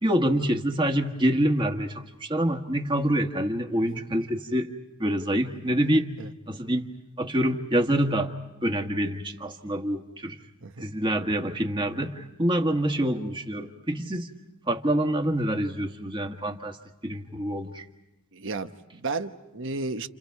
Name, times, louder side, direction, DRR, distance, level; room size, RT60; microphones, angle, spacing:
voice 1, 0.0-4.7 5.0-6.1 6.5-6.9 7.2-8.3 8.6-10.4 10.8-14.3 14.7-16.8 17.0-17.8, right 1 dB, 20° right, 4 dB, 1.7 m, -26 dB
voice 2, 18.3-20.1, right 3 dB, 60° right, 8 dB, 1.1 m, -33 dB
30.0 x 29.5 x 4.7 m, 0.98 s
head